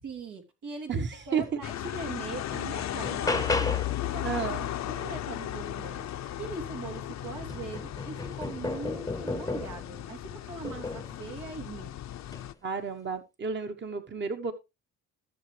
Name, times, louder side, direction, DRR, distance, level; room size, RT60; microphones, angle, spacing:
voice 1, 0.0-4.5 4.8-6.1 6.4-12.0, right 4 dB, 85° right, 2 dB, 3.2 m, -41 dB
voice 2, 0.9-1.6 4.2-4.7 12.6-14.5, right 6 dB, 35° right, 7 dB, 1.2 m, -32 dB
sound 1, 1.6-12.5, left 12 dB, 65° left, 0.7 m, -36 dB
sound 2, 1.7-1.8 2.2-4.1 6.4-6.5 7.0-9.9 10.6-11.2 12.2-12.5, left 3 dB, 10° left, 0.8 m, -34 dB
15.5 x 6.8 x 3.3 m, 0.25 s
cardioid pair, 90°, 30 cm